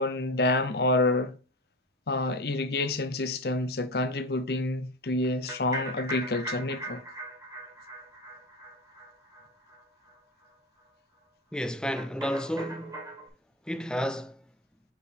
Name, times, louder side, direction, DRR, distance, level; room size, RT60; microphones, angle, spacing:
voice 1, 0.0-1.3 2.1-7.0, left 2 dB, 60° left, 0.6 m, -28 dB
sound 1, 5.2-9.8 10.0-10.2 10.4-10.5 10.8-10.9 12.0-13.3, right 1 dB, 20° right, 1.4 m, -40 dB
voice 2, 11.5-13.1 13.7-14.4, equal, 5° left, 0.4 m, -31 dB
6.7 x 4.9 x 3.4 m
head